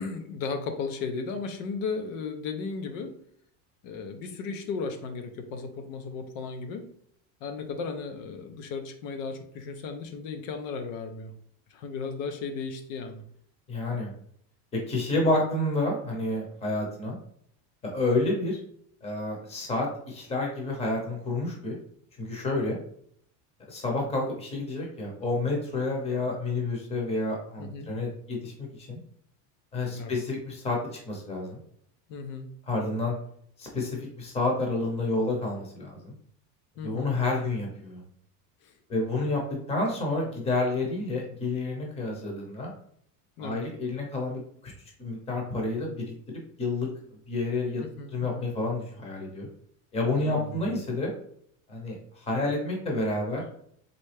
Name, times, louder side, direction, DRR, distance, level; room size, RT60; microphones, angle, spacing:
voice 1, 0.0-3.1 3.8-6.8 7.4-11.3 11.7-13.2 15.2-15.3 27.6-27.9 29.9-30.1 32.1-32.5 36.8-37.1 38.6-38.7 43.4-43.6 47.8-48.5 50.1-50.6, left 4 dB, 85° left, 6 dB, 0.8 m, -35 dB
voice 2, 13.7-14.1 14.7-17.2 17.8-18.6 19.0-21.8 22.2-22.8 23.7-29.0 29.7-30.8 31.1-31.6 32.7-33.1 33.6-36.1 36.8-38.0 38.9-39.4 39.7-42.7 43.4-44.7 45.0-46.9 47.3-47.8 48.1-49.5 49.9-51.1 51.7-53.4, left 2 dB, 15° left, 0 dB, 0.8 m, -29 dB
4.1 x 3.3 x 3.3 m, 0.66 s
cardioid pair, 180°, 39 cm